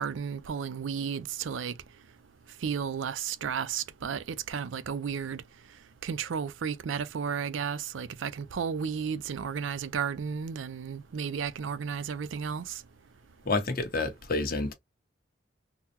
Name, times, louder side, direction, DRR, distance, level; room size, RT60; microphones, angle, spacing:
voice 1, 0.0-1.7 2.6-5.4 6.0-12.8, right 7 dB, 85° right, 0.4 m, -33 dB
voice 2, 13.4-14.7, left 3 dB, 50° left, 1.0 m, -29 dB
3.8 x 2.1 x 2.8 m
head